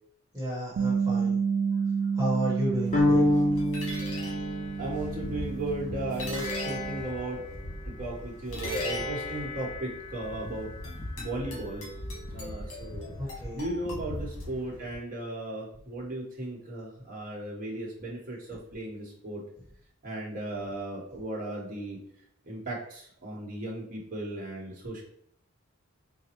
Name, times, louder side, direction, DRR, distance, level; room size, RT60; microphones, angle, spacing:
voice 1, 0.3-1.4 2.1-3.3 13.2-13.6, equal, 15° right, -6 dB, 1.2 m, -32 dB
Bass guitar, 0.8-7.0, right 6 dB, 65° right, 0.3 m, -30 dB
sound 1, 2.9-15.0, left 1 dB, 75° left, 1.2 m, -38 dB
sound 2, 2.9-5.2, left 1 dB, 40° left, 0.8 m, -26 dB
voice 2, 4.8-7.4 7.8-10.7 11.2-11.8 12.3-13.1 13.5-19.4 20.0-22.0 22.5-25.0, right 1 dB, 40° right, -4 dB, 1.1 m, -36 dB
4.1 x 2.2 x 2.9 m, 0.67 s
head